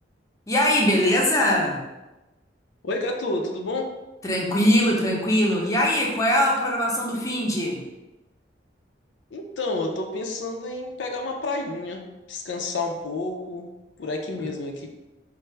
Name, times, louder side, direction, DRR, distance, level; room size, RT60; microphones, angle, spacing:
voice 1, 0.5-1.8 4.2-7.8, equal, 20° left, -2 dB, 0.6 m, -21 dB
voice 2, 2.8-3.9 9.3-13.7 14.0-14.9, left 2 dB, 85° left, 2 dB, 0.5 m, -30 dB
4.4 x 2.0 x 3.2 m, 1.0 s
head